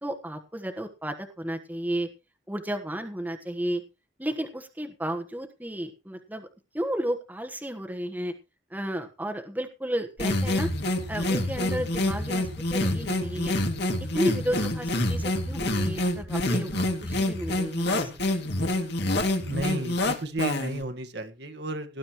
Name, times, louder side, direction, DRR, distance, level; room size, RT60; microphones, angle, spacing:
voice 1, 0.0-2.1 2.5-3.8 4.2-6.5 6.7-8.3 8.7-10.7 11.1-13.5 14.1-18.1, right 1 dB, 10° right, 4 dB, 1.3 m, -32 dB
sound 1, 10.2-20.8, left 1 dB, 55° left, 2.4 m, -27 dB
voice 2, 19.5-22.0, right 2 dB, 55° right, 7 dB, 1.6 m, -33 dB
18.5 x 11.0 x 3.1 m, 0.30 s
head